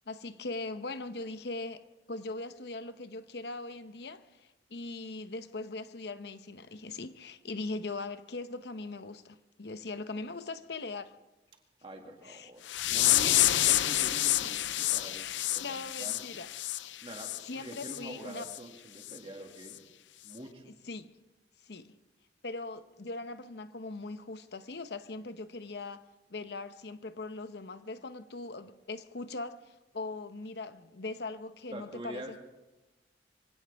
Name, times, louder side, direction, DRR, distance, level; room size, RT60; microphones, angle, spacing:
voice 1, 0.1-1.8 2.1-11.1 12.3-12.5 13.2-13.6 15.2-16.5 16.7-16.8 17.5-18.5 20.9-21.1 21.6-21.9 22.4-26.0 26.3-32.4, left 3 dB, 65° left, 0.8 m, -40 dB
voice 2, 11.8-16.5 17.0-19.8 20.2-20.8 31.7-32.4, right 1 dB, 30° right, 2.1 m, -46 dB
sound 1, 12.7-17.4 17.8-18.0 18.4-18.6 19.1-19.2 19.7-19.8, left 14 dB, 80° left, 0.5 m, -28 dB
24.0 x 17.0 x 3.5 m
head